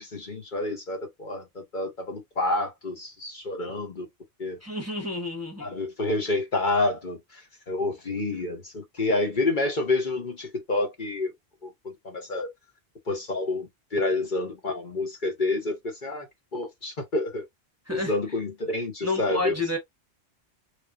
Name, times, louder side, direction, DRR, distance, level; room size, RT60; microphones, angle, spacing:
voice 1, 0.0-4.1 4.4-4.6 5.6-11.3 11.6-12.5 13.1-16.3 16.5-17.4 17.9-19.6, left 2 dB, 50° left, 1.1 m, -29 dB
voice 2, 4.6-5.7 17.9-18.1 19.0-19.8, left 2 dB, 15° right, 1.0 m, -30 dB
3.7 x 3.3 x 2.4 m
omnidirectional pair, 1.1 m